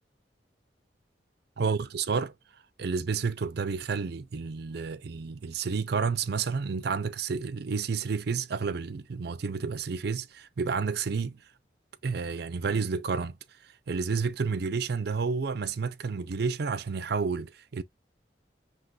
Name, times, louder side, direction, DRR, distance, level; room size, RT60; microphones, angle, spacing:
voice 1, 1.6-2.3 2.8-11.4 12.0-13.4 13.9-17.8, right 5 dB, 65° right, 0.5 m, -30 dB
5.9 x 3.0 x 2.4 m
head